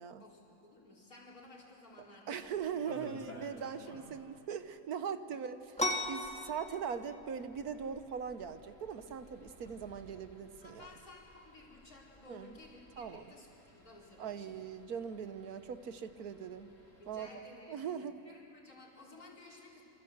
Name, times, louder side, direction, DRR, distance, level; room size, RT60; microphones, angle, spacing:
voice 1, 0.2-2.7 3.8-4.0 5.3-5.4 10.6-14.7 17.0-19.8, left 2 dB, 75° left, -3 dB, 5.0 m, -56 dB
voice 2, 2.3-10.9 12.3-12.5 13.0-13.2 14.2-16.7 17.1-17.3 17.7-18.2, right 7 dB, 90° right, 10 dB, 1.6 m, -40 dB
sound 1, 2.4-4.4 4.6-4.7 5.0-5.1 5.6-17.3, left 1 dB, 55° left, 5.6 m, -57 dB
sound 2, 5.8-13.2, left 1 dB, 5° left, 1.7 m, -41 dB
28.0 x 25.5 x 8.0 m, 2.9 s
omnidirectional pair, 1.5 m